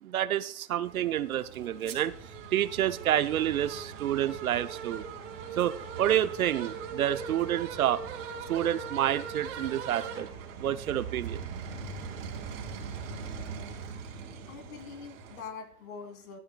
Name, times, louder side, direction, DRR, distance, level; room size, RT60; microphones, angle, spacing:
voice 1, 0.0-2.1 2.5-5.0 5.6-8.0 8.5-10.3 10.6-11.4, right 11 dB, 60° right, 12 dB, 0.7 m, -29 dB
sound 1, 0.8-15.4, right 6 dB, 35° right, 3.1 m, -40 dB
voice 2, 14.5-16.4, left 5 dB, 55° left, 7 dB, 2.7 m, -43 dB
17.5 x 12.0 x 2.3 m, 0.62 s
hypercardioid pair, 155°, 50 cm